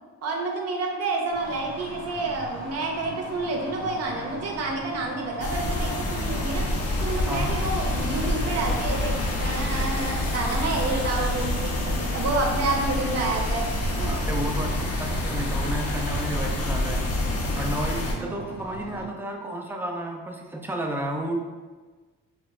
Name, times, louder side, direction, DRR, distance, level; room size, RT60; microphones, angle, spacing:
voice 1, 0.2-6.6 7.0-13.6 14.0-14.1 18.2-18.4, right 2 dB, 55° right, 0 dB, 0.6 m, -29 dB
sound 1, 1.3-19.1, equal, 85° left, 0.8 m, -39 dB
sound 2, 5.4-18.1, left 1 dB, 50° left, 0.5 m, -27 dB
voice 2, 7.3-7.6 14.1-17.1 17.6-21.4, right 1 dB, 5° right, 1 dB, 0.3 m, -32 dB
2.1 x 2.0 x 3.5 m, 1.3 s
cardioid pair, 90°, 30 cm